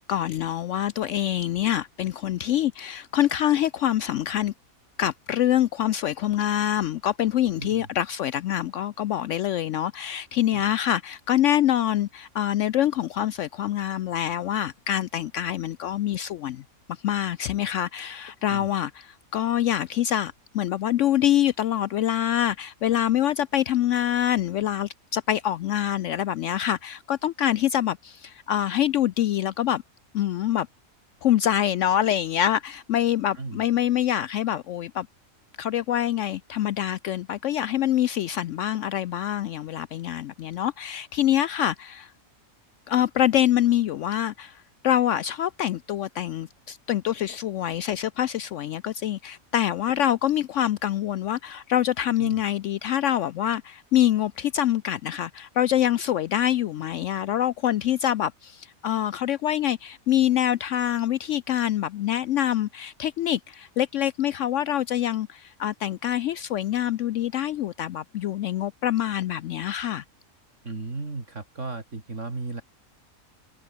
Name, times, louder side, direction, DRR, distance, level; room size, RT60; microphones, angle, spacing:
voice 1, 0.1-4.5 5.0-16.6 17.0-29.8 30.1-30.7 31.2-35.1 35.6-42.1 42.9-70.0, left 11 dB, 70° left, 0.8 m, -25 dB
voice 2, 7.6-7.9 10.5-10.7 18.5-18.7 33.4-33.6 52.2-52.4 70.6-72.6, right 3 dB, 60° right, 3.5 m, -35 dB
omnidirectional pair, 1.5 m